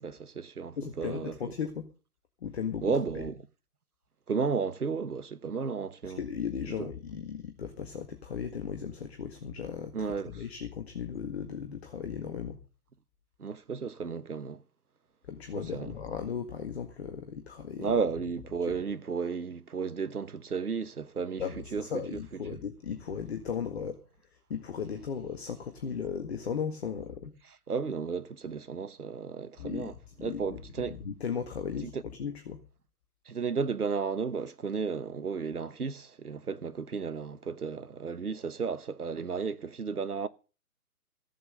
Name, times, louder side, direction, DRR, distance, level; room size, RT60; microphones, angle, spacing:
voice 1, 0.0-1.4 2.8-3.4 4.3-6.2 6.7-6.9 9.9-10.4 13.4-14.6 15.5-15.9 17.8-21.4 21.7-22.4 27.4-31.0 31.8-32.0 33.3-40.3, right 5 dB, 75° right, 1.2 m, -33 dB
voice 2, 0.8-1.9 2.4-2.9 6.2-12.6 15.3-17.9 21.4-24.0 24.5-27.3 29.6-29.9 30.2-32.6, left 7 dB, 45° left, 1.9 m, -36 dB
15.5 x 7.8 x 6.8 m
figure-of-eight pair, 135°, 45 cm